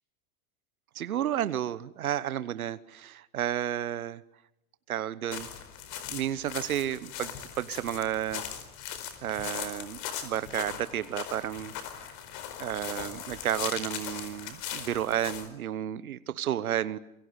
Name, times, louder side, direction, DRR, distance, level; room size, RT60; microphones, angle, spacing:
voice 1, 0.9-4.2 4.9-5.5 6.1-8.4 9.2-11.7 12.6-17.0, right 11 dB, 90° right, 16 dB, 1.1 m, -32 dB
sound 1, 5.3-15.5, left 9 dB, 55° left, 4.7 m, -39 dB
27.5 x 23.5 x 8.1 m, 0.87 s
hypercardioid pair, 95°, 42 cm